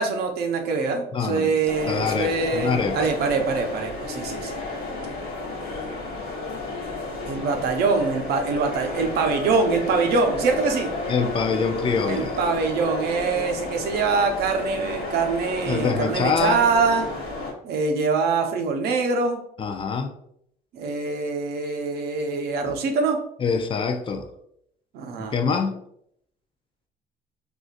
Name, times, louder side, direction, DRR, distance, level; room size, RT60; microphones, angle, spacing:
voice 1, 0.0-4.6 7.3-10.9 12.1-17.1 17.6-19.4 20.7-23.2 24.9-25.3, right 4 dB, 70° right, 4 dB, 0.7 m, -24 dB
voice 2, 1.1-2.9 11.1-12.4 15.7-16.6 19.6-20.1 22.7-22.8 23.4-24.3 25.2-25.7, left 5 dB, 30° left, 6 dB, 0.4 m, -25 dB
sound 1, 1.7-17.5, left 2 dB, 65° left, 1.1 m, -32 dB
3.8 x 2.5 x 2.4 m, 0.72 s
cardioid pair, 110°, 17 cm